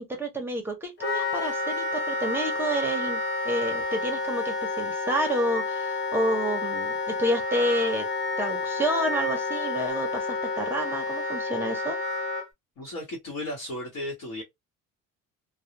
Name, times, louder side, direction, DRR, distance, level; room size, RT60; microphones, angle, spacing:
voice 1, 0.0-8.0 8.4-12.0, right 1 dB, 5° right, 0.6 m, -29 dB
Wind instrument woodwind instrument, 1.0-12.4, left 3 dB, 35° left, 0.8 m, -30 dB
voice 2, 12.8-14.4, left 1 dB, 70° left, 1.1 m, -35 dB
2.3 x 2.0 x 2.8 m
cardioid pair, 170°, 34 cm